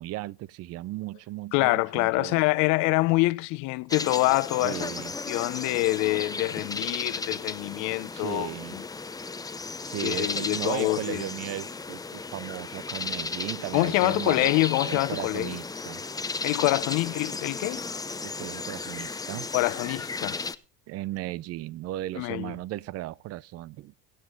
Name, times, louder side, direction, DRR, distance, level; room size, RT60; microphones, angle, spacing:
voice 1, 0.0-2.4 4.6-5.1 8.1-8.8 9.8-14.5 14.8-16.0 18.2-19.5 20.9-23.9, right 16 dB, 50° right, 0.6 m, -36 dB
voice 2, 1.5-4.9 5.3-8.8 10.0-11.2 13.7-15.6 16.4-17.8 19.5-20.4 22.2-22.5, left 21 dB, 60° left, 0.8 m, -26 dB
sound 1, 3.9-20.6, left 4 dB, 10° left, 0.8 m, -35 dB
22.0 x 7.7 x 3.8 m
supercardioid pair, 100°, 33 cm